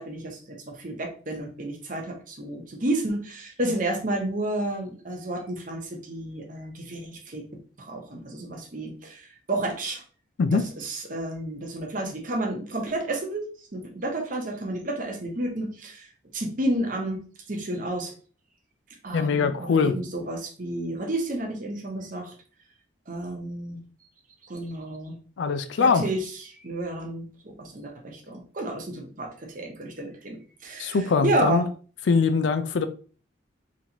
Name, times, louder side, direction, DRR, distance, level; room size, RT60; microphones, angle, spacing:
voice 1, 0.0-7.4 7.8-10.0 10.5-13.5 13.7-16.1 16.3-17.2 17.5-18.1 19.0-22.3 23.1-23.8 24.4-25.2 25.8-31.6, right 1 dB, 45° right, 0.9 m, -31 dB
voice 2, 19.1-19.9 25.4-26.1 30.8-31.6 32.1-32.9, left 5 dB, 70° left, 0.4 m, -22 dB
4.0 x 3.1 x 2.8 m
head